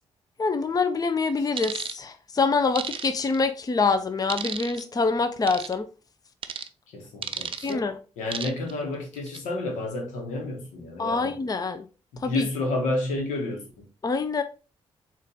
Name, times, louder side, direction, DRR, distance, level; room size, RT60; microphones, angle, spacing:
voice 1, 0.4-5.9 7.6-7.9 11.0-11.8 12.2-12.5 14.0-14.4, left 4 dB, 30° left, 0.5 m, -25 dB
sound 1, 1.6-1.9 2.7-3.4 4.3-4.8 5.5-5.7 6.4-6.7 7.2-7.7 8.3-8.7 9.2-9.4, right 7 dB, 45° right, 0.5 m, -33 dB
voice 2, 6.9-11.4 12.1-13.9, left 2 dB, 90° left, 1.0 m, -31 dB
4.0 x 2.5 x 3.7 m
supercardioid pair, 50°, 12 cm